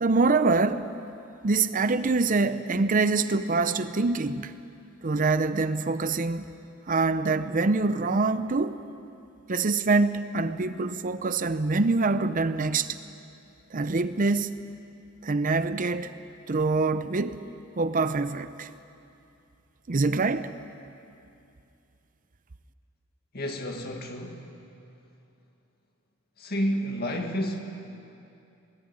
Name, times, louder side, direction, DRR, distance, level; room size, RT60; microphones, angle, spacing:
voice 1, 0.0-0.9 1.4-4.5 5.0-6.4 6.9-8.8 9.5-13.0 13.7-14.5 15.2-16.1 16.5-17.4 17.8-18.7 19.9-20.5, right 3 dB, 40° right, 12 dB, 0.6 m, -25 dB
voice 2, 23.3-24.5 26.4-27.6, equal, 50° left, 3 dB, 2.2 m, -30 dB
21.0 x 16.5 x 9.8 m, 2.6 s
head